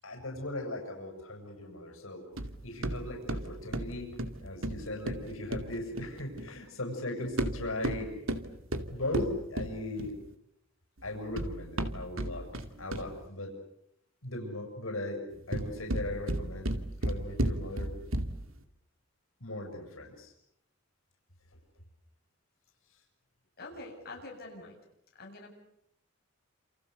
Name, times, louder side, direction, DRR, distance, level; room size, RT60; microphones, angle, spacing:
voice 1, 0.0-2.3 2.6-8.1 8.9-10.1 11.0-13.5 14.2-15.2 15.5-16.7 17.0-17.9 19.4-20.3 21.5-21.6, left 1 dB, 85° left, 2 dB, 7.5 m, -38 dB
sound 1, 2.4-6.6 7.2-10.3 11.0-13.3 15.3-18.5, right 1 dB, 80° right, 2.4 m, -34 dB
voice 2, 23.6-24.8 25.2-25.5, left 2 dB, 50° left, -1 dB, 7.9 m, -45 dB
29.0 x 29.0 x 6.9 m, 0.79 s
head